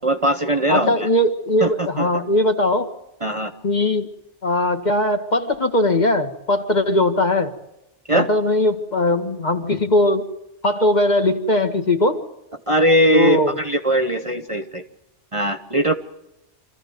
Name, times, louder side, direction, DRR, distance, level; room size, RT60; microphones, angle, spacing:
voice 1, 0.0-1.1 1.6-2.1 3.2-3.5 8.1-8.3 12.7-14.8 15.3-15.9, right 1 dB, 30° right, 9 dB, 1.1 m, -20 dB
voice 2, 0.7-2.9 3.6-4.1 4.4-7.5 8.1-10.2 10.6-12.2 13.1-13.5, left 1 dB, 35° left, 6 dB, 1.7 m, -19 dB
26.0 x 14.5 x 9.4 m, 0.93 s
omnidirectional pair, 1.2 m